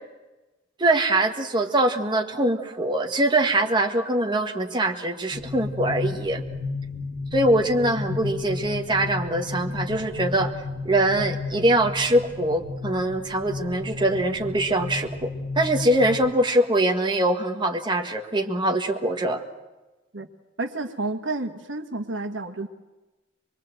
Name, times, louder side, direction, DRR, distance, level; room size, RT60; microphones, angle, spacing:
voice 1, 0.8-6.4 7.3-10.5 10.8-19.4, right 1 dB, 25° right, 3 dB, 1.7 m, -23 dB
sound 1, 5.3-16.3, left 3 dB, 90° left, 1.9 m, -33 dB
voice 2, 20.6-22.7, right 2 dB, 75° right, 7 dB, 1.6 m, -30 dB
25.0 x 22.5 x 7.9 m, 1.1 s
head